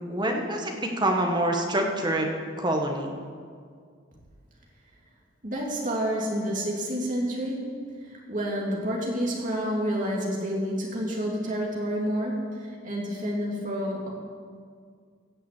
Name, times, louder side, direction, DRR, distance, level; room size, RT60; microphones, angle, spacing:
voice 1, 0.0-2.3 2.6-3.1, right 1 dB, 20° right, 2 dB, 1.3 m, -26 dB
voice 2, 5.4-14.1, equal, 40° right, -2 dB, 2.5 m, -29 dB
16.0 x 5.9 x 8.4 m, 2.1 s
head